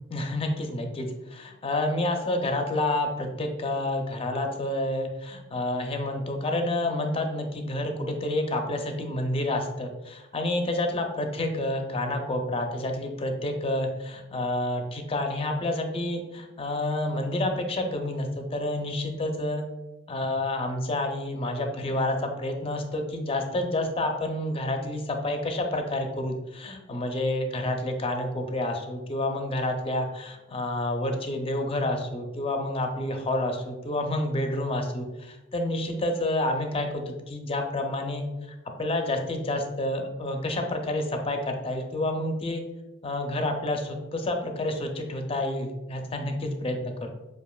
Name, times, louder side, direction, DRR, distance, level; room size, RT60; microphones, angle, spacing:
voice 1, 0.0-19.6 20.1-38.3 38.8-42.6 43.0-47.1, left 1 dB, 30° left, 4 dB, 0.5 m, -29 dB
7.0 x 2.5 x 2.3 m, 1.0 s
head